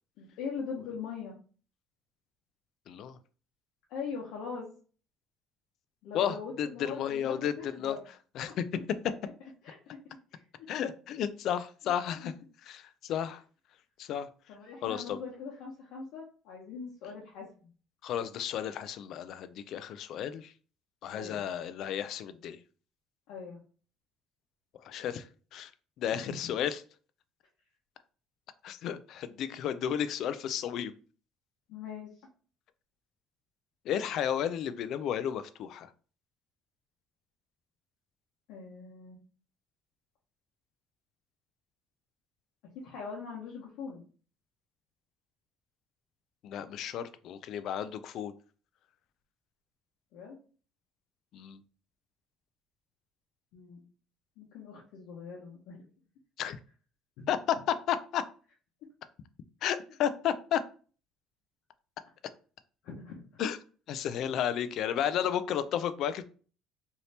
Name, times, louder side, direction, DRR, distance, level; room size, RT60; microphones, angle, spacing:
voice 1, 0.2-1.4 3.9-4.7 6.0-8.0 8.5-8.6 9.6-10.0 10.3-10.7 12.2-12.3 14.5-17.7 21.1-21.4 23.3-23.6 26.1-26.5 31.7-32.1 38.5-39.2 42.7-44.0 50.1-50.4 53.5-53.8 54.4-55.9 62.8-63.2, left 5 dB, 75° left, -3 dB, 0.8 m, -41 dB
voice 2, 2.9-3.2 6.1-8.0 8.4-8.6 10.7-12.3 12.7-13.4 14.0-14.3 14.8-15.2 18.0-20.5 21.0-22.6 24.8-25.7 26.0-26.8 28.6-30.9 33.9-35.9 46.4-48.3 51.3-51.6 56.4-56.6 57.3-58.2 59.6-60.6 63.4-63.6 63.9-66.2, left 9 dB, 55° left, 13 dB, 0.3 m, -32 dB
3.3 x 2.7 x 2.7 m, 0.39 s
cardioid pair, 150°, 0 cm